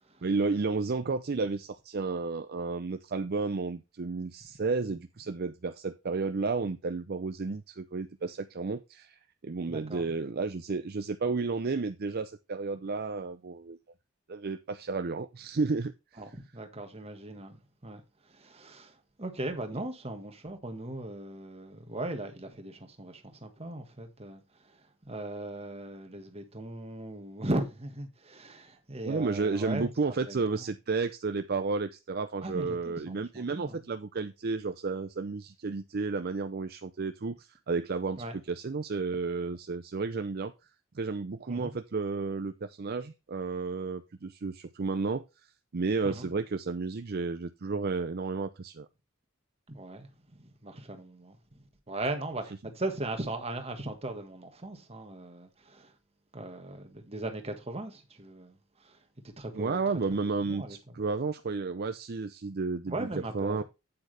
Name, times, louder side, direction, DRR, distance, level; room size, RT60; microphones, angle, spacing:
voice 1, 0.2-13.8 14.3-16.2 19.7-19.8 29.0-40.5 40.9-45.2 45.7-48.9 59.5-63.1 63.3-63.6, right 4 dB, 50° right, 0.5 m, -32 dB
voice 2, 9.7-10.0 16.2-18.0 18.3-24.4 25.0-29.9 30.3-30.6 32.4-33.8 38.2-38.4 41.5-41.7 46.0-46.3 49.7-55.9 56.3-58.6 58.8-59.0 59.2-59.8 60.5-60.8 62.9-63.6, right 2 dB, 30° right, 1.6 m, -38 dB
8.8 x 8.0 x 3.3 m
head